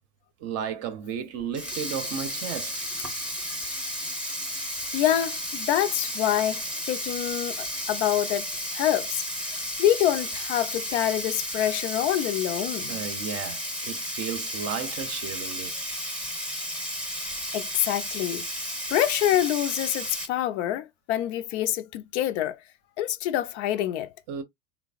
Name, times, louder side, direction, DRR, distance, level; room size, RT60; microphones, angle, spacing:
voice 1, 0.4-2.8 12.9-15.7 24.3-24.4, right 7 dB, 35° right, 0.6 m, -33 dB
Sink (filling or washing), 1.4-20.3, equal, ahead, 0.7 m, -33 dB
voice 2, 4.8-12.9 17.5-18.4 18.9-22.6 23.0-24.1, left 12 dB, 55° left, 0.5 m, -26 dB
3.2 x 2.0 x 2.3 m
hypercardioid pair, 110°, 42 cm